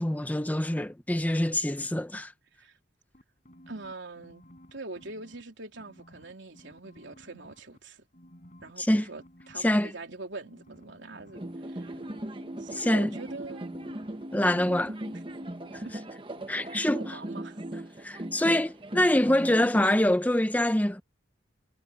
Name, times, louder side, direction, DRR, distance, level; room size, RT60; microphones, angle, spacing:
voice 1, 0.0-2.3 8.8-9.1 9.6-9.9 12.7-13.1 14.3-14.9 15.7-15.8 16.5-17.2 18.0-21.0, left 1 dB, 10° left, 0.6 m, -25 dB
sound 1, 3.1-5.4 5.7-7.8 8.1-9.6 10.5-16.1 16.4-16.5, equal, 40° left, 6.9 m, -54 dB
voice 2, 3.7-4.4 4.7-8.0 8.6-12.0 12.6-13.7 15.8-15.9 16.8-17.6, right 3 dB, 70° right, 3.4 m, -43 dB
sound 2, 11.3-20.0, right 1 dB, 25° right, 1.2 m, -38 dB
head